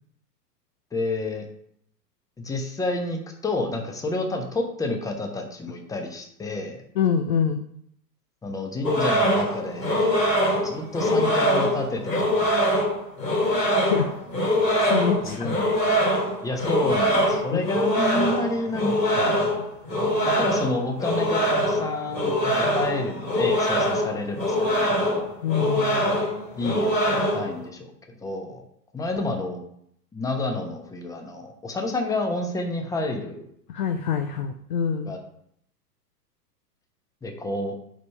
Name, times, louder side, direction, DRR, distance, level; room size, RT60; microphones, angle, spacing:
voice 1, 0.9-1.5 2.4-6.8 8.4-10.2 10.5-12.5 15.2-15.7 16.4-19.4 20.2-25.3 26.6-27.9 28.2-28.6 28.9-29.6 30.1-33.5 35.1-35.2 37.2-37.7, left 2 dB, 5° left, 3 dB, 0.9 m, -29 dB
voice 2, 7.0-7.6 12.1-12.2 13.9-14.1 14.8-15.8 17.5-17.6 25.4-26.2 33.7-35.1, left 7 dB, 30° left, 6 dB, 0.4 m, -25 dB
sound 1, 8.8-27.6, equal, 85° left, 2.3 m, -23 dB
5.4 x 5.1 x 5.4 m, 0.69 s
figure-of-eight pair, 105°, 49 cm